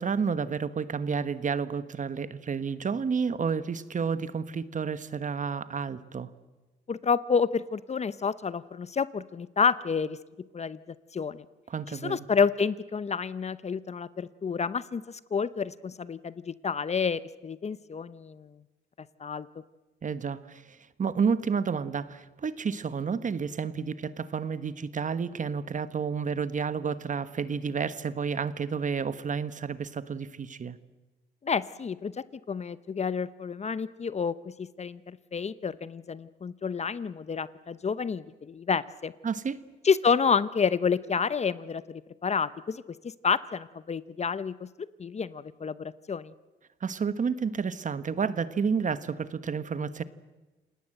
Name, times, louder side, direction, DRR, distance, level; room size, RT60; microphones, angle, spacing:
voice 1, 0.0-6.3 11.7-12.2 20.0-30.8 39.2-39.6 46.8-50.0, right 6 dB, 40° right, 14 dB, 1.2 m, -30 dB
voice 2, 6.9-10.2 10.5-10.8 11.1-11.4 12.0-18.5 19.2-19.5 31.4-32.1 32.5-39.1 39.8-46.3, left 6 dB, 35° left, 16 dB, 0.7 m, -29 dB
28.0 x 18.5 x 7.8 m, 1.1 s
cardioid pair, 90°, 20 cm